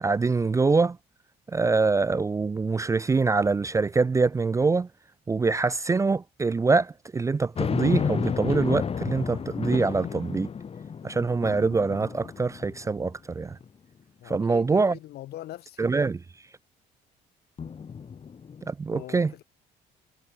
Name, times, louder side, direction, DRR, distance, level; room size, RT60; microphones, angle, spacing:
voice 1, 0.0-1.0 1.5-4.9 5.3-10.5 11.0-13.6 14.3-15.0 15.8-16.2 18.7-19.3, right 4 dB, 20° right, 0.4 m, -24 dB
sound 1, 7.5-13.1 13.6-13.7 17.6-18.7, left 6 dB, 35° left, 2.4 m, -31 dB
voice 2, 14.2-15.8 18.9-19.4, left 14 dB, 70° left, 2.9 m, -42 dB
cardioid pair, 110°, 17 cm